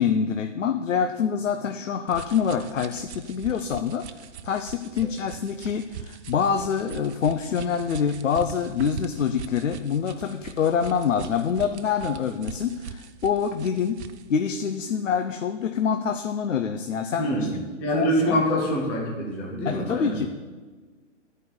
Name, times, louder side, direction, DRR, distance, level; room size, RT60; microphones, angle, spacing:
voice 1, 0.0-4.1 4.4-14.0 14.3-17.3 17.9-18.4 19.7-20.3, left 7 dB, 80° left, 7 dB, 0.8 m, -26 dB
sound 1, 2.1-14.3, right 7 dB, 60° right, 0.8 m, -41 dB
voice 2, 17.2-17.5 17.8-20.2, equal, 5° left, -1 dB, 0.3 m, -25 dB
9.7 x 5.3 x 7.9 m, 1.4 s
hypercardioid pair, 140°, 37 cm